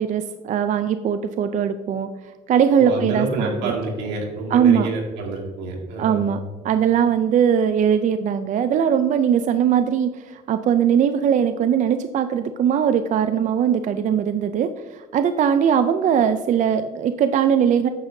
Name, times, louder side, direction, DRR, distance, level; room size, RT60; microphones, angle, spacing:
voice 1, 0.0-2.1 2.5-3.7 4.5-4.9 6.0-6.4 6.6-17.9, right 8 dB, 50° right, 10 dB, 0.4 m, -20 dB
voice 2, 2.8-6.3, right 3 dB, 90° right, -1 dB, 2.2 m, -27 dB
9.5 x 7.0 x 2.7 m, 1.3 s
cardioid pair, 110°, 17 cm